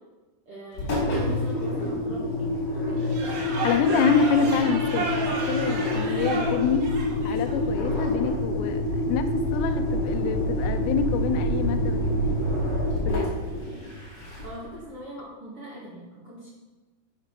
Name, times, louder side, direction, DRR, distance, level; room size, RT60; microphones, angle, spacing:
voice 1, 0.5-2.5 14.4-16.5, right 1 dB, 45° right, -6 dB, 2.0 m, -41 dB
Engine, 0.7-14.7, left 1 dB, 40° left, 3.2 m, -27 dB
sound 1, 3.0-7.6, right 3 dB, 60° right, 3.9 m, -32 dB
voice 2, 3.6-5.1 5.5-6.9 7.2-12.4 13.0-13.4, left 6 dB, 90° left, 8 dB, 3.4 m, -26 dB
10.0 x 7.9 x 6.0 m, 1.2 s
omnidirectional pair, 5.7 m